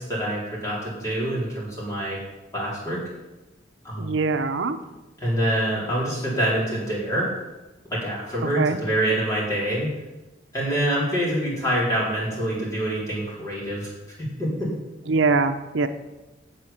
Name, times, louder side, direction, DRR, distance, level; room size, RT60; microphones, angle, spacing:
voice 1, 0.0-2.2 2.5-3.0 3.8-4.1 5.2-7.3 7.9-9.9 10.5-13.9 14.2-14.7, right 1 dB, 20° left, -6 dB, 4.1 m, -26 dB
voice 2, 4.0-4.8 8.6-8.8 15.1-15.9, right 4 dB, 80° right, 8 dB, 0.7 m, -22 dB
8.2 x 7.5 x 7.2 m, 1.1 s
head